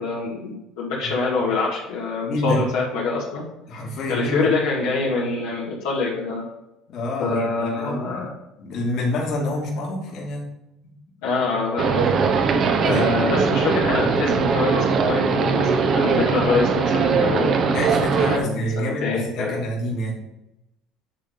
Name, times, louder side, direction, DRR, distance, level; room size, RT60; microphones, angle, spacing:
voice 1, 0.0-3.5 4.1-6.4 7.2-8.3 11.2-12.1 12.8-17.5 18.3-19.5, left 3 dB, 80° left, -6 dB, 2.3 m, -25 dB
voice 2, 2.2-2.6 3.7-4.5 6.9-8.1 8.6-10.5 12.9-13.3 16.1-16.4 17.7-20.2, left 1 dB, 60° left, -3 dB, 2.5 m, -27 dB
sound 1, 11.8-18.4, right 5 dB, 50° right, 1.0 m, -20 dB
10.0 x 3.7 x 5.3 m, 0.89 s
supercardioid pair, 85°, 0 cm